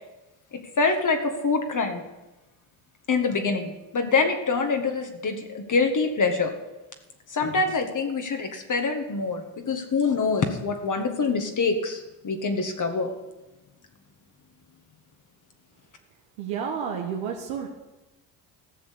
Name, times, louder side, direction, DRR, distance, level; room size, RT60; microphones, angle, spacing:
voice 1, 0.5-2.0 3.1-6.5 7.3-13.1, left 4 dB, 40° left, 5 dB, 1.8 m, -25 dB
voice 2, 16.4-17.7, right 7 dB, 85° right, 1 dB, 1.5 m, -30 dB
14.5 x 6.2 x 8.6 m, 1.0 s
supercardioid pair, 70°, 46 cm